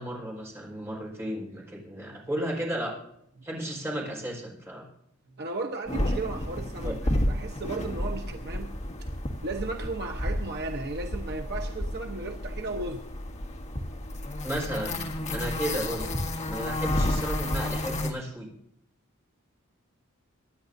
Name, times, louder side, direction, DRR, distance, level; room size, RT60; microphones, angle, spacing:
voice 1, 0.0-2.9 3.4-4.9 6.8-6.9 14.4-15.0 15.3-16.0 16.4-18.5, right 1 dB, 10° right, -2 dB, 4.9 m, -33 dB
voice 2, 5.4-8.8 9.4-13.0, right 3 dB, 50° right, 3 dB, 1.0 m, -35 dB
sound 1, 5.9-18.1, left 1 dB, 35° left, 1.7 m, -31 dB
24.5 x 10.5 x 2.7 m, 0.76 s
head